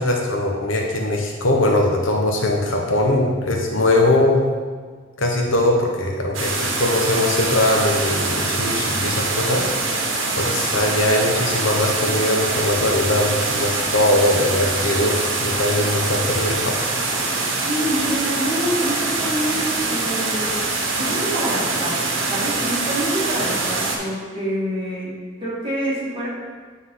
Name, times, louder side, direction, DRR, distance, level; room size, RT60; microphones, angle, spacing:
voice 1, 0.0-4.4 5.2-9.7 10.4-16.7, left 1 dB, 85° left, 0 dB, 1.0 m, -20 dB
sound 1, 6.3-24.0, right 3 dB, 85° right, 1.0 m, -24 dB
voice 2, 17.5-22.0 22.2-26.3, right 1 dB, 25° right, -8 dB, 1.9 m, -27 dB
8.2 x 3.9 x 3.8 m, 1.5 s
head